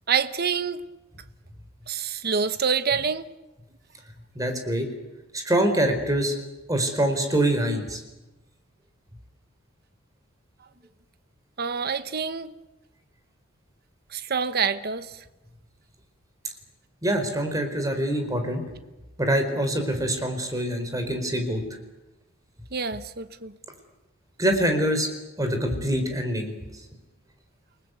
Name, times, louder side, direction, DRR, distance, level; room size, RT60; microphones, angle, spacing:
voice 1, 0.1-0.8 1.9-3.3 11.6-12.5 14.1-15.1 22.7-23.5, right 6 dB, 50° right, 1.1 m, -26 dB
voice 2, 4.3-4.9 5.3-6.4 6.7-8.0 17.0-18.6 19.2-21.6 24.4-25.1 25.4-26.5, right 1 dB, 15° right, 4.5 m, -24 dB
29.5 x 19.5 x 8.3 m
head